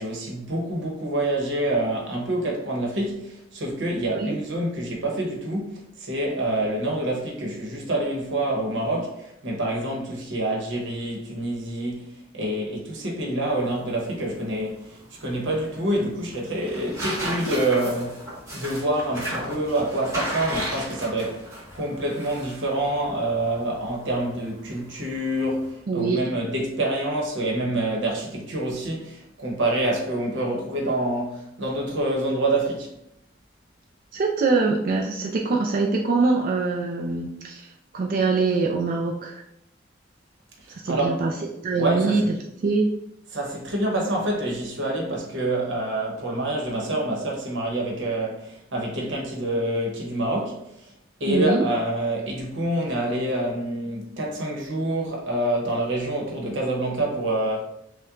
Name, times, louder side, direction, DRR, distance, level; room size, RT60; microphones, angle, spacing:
voice 1, 0.0-12.1 12.3-18.2 18.5-21.5 21.7-32.9 40.6-41.2 41.7-42.3 43.3-50.9 51.2-57.6, right 1 dB, 90° right, 1.0 m, -27 dB
sound 1, 13.5-25.7, right 1 dB, 15° right, 1.3 m, -36 dB
voice 2, 25.9-26.2 34.1-39.4 40.8-41.3 41.6-42.2 42.6-42.9 51.3-51.7, right 3 dB, 50° right, 0.4 m, -23 dB
5.6 x 2.2 x 2.5 m
head